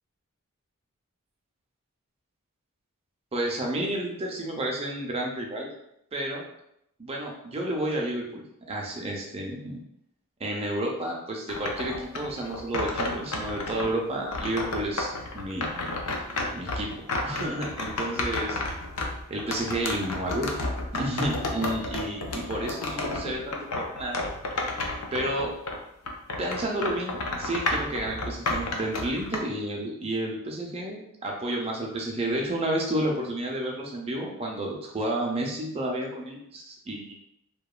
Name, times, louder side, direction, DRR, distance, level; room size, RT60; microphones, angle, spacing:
voice 1, 3.3-5.7 6.1-6.4 7.0-9.8 10.4-15.7 16.5-16.9 17.2-18.6 19.3-20.5 20.9-24.2 25.1-25.5 26.4-37.2, right 1 dB, 25° right, -1 dB, 0.5 m, -31 dB
sound 1, 11.5-13.9 14.3-25.8 26.1-29.4, left 2 dB, 75° left, 0.4 m, -31 dB
2.8 x 2.3 x 2.3 m, 0.77 s
head